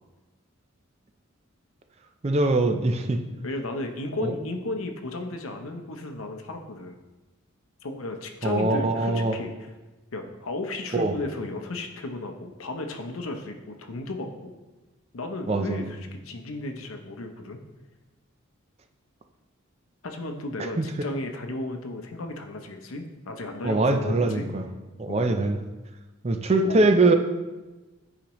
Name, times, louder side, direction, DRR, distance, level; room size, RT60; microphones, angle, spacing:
voice 1, 2.2-3.2 4.2-4.3 8.4-9.4 10.9-11.1 15.5-15.9 20.8-20.9 23.6-24.6 25.0-25.6 26.2-27.1, right 2 dB, 30° right, 6 dB, 0.4 m, -22 dB
voice 2, 3.4-7.0 7.8-9.7 10.1-14.6 15.1-17.6 20.0-24.5 25.1-25.4 26.5-26.9, left 2 dB, 80° left, 5 dB, 0.7 m, -34 dB
8.6 x 5.0 x 3.1 m, 1.2 s
head